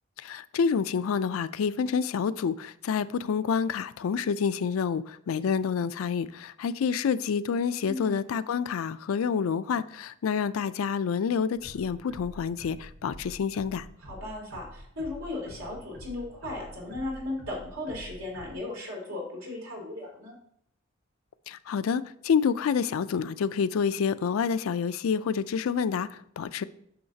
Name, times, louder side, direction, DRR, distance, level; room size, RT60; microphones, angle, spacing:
voice 1, 0.2-13.9 21.5-26.6, left 6 dB, 90° left, 0.4 m, -28 dB
voice 2, 7.9-8.2 14.0-20.4, left 2 dB, 85° right, 2.9 m, -36 dB
sound 1, 11.5-18.5, equal, 65° right, 1.5 m, -47 dB
8.6 x 6.4 x 2.7 m
head